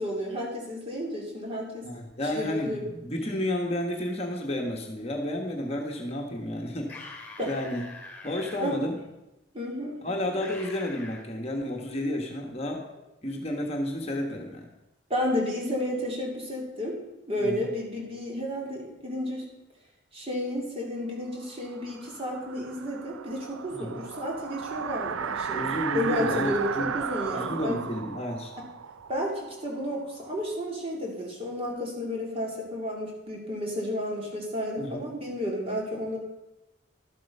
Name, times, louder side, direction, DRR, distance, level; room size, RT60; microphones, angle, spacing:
voice 1, 0.0-1.9 2.3-2.8 7.4-7.5 8.6-8.8 9.5-10.0 15.1-17.0 17.3-19.4 20.1-27.8 29.1-36.2, left 1 dB, 30° right, -2 dB, 2.7 m, -32 dB
voice 2, 1.8-7.9 8.2-9.0 10.0-12.8 13.2-14.7 17.4-17.7 23.7-24.0 25.5-26.9 27.3-28.5 34.8-35.0, left 1 dB, 30° left, 2 dB, 1.3 m, -31 dB
sound 1, 6.8-8.6 10.4-11.2, left 3 dB, 10° left, 2.5 m, -44 dB
sound 2, 21.6-30.3, right 7 dB, 85° right, 0.5 m, -35 dB
12.5 x 7.6 x 5.4 m, 0.94 s
head